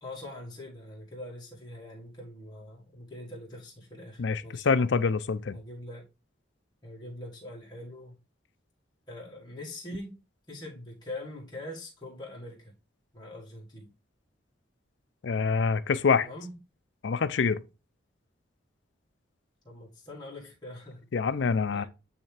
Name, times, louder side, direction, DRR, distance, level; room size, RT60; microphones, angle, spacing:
voice 1, 0.0-4.7 5.5-6.1 6.8-8.2 9.1-10.2 10.5-12.7 13.1-13.9 16.1-16.5 19.6-21.1 21.7-21.9, left 1 dB, 20° left, 1.6 m, -43 dB
voice 2, 4.2-5.6 15.2-16.3 17.0-17.6 21.1-21.8, left 5 dB, 65° left, 0.5 m, -26 dB
8.7 x 3.4 x 3.3 m
head